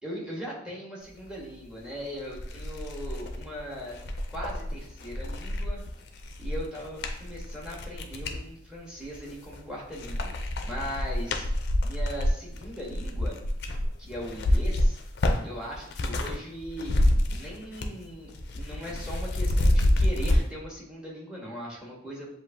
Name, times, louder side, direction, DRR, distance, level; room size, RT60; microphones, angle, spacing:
voice 1, 0.0-4.0 4.3-5.8 6.4-13.4 14.0-15.0 15.4-17.0 17.3-22.3, equal, 5° right, -3 dB, 1.0 m, -39 dB
sound 1, 1.8-1.9 2.3-8.4 9.0-9.6 9.9-16.4 16.6-18.0 18.3-20.4, left 1 dB, 55° left, 0.5 m, -27 dB
7.4 x 2.5 x 2.6 m, 0.74 s
head